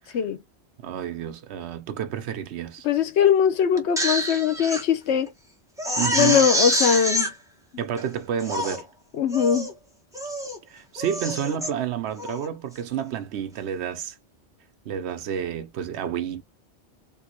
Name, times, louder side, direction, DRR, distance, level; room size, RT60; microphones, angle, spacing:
voice 1, 0.8-2.8 6.0-6.5 7.8-8.9 10.7-14.2 14.9-16.4, right 9 dB, 75° right, 0.9 m, -30 dB
voice 2, 2.8-5.3 6.1-7.3 7.7-7.8 9.2-9.7, left 8 dB, 80° left, 1.0 m, -21 dB
Crying sobbing, 3.8-4.8 5.3-5.4 5.8-7.3 8.0-8.1 8.4-8.8 9.3-9.7 10.1-10.6 11.0-11.7 12.2-12.5, equal, 5° right, 0.8 m, -26 dB
3.5 x 2.7 x 2.9 m
omnidirectional pair, 1.1 m